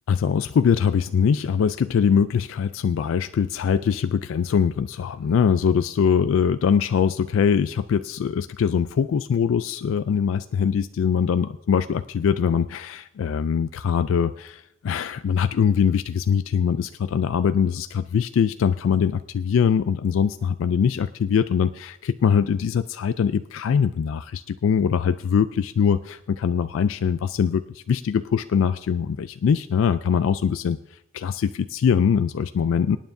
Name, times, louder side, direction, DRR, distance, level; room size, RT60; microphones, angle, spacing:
voice 1, 0.1-30.8 31.1-33.0, left 7 dB, 70° left, 12 dB, 0.3 m, -22 dB
26.0 x 9.2 x 2.6 m, 0.84 s
head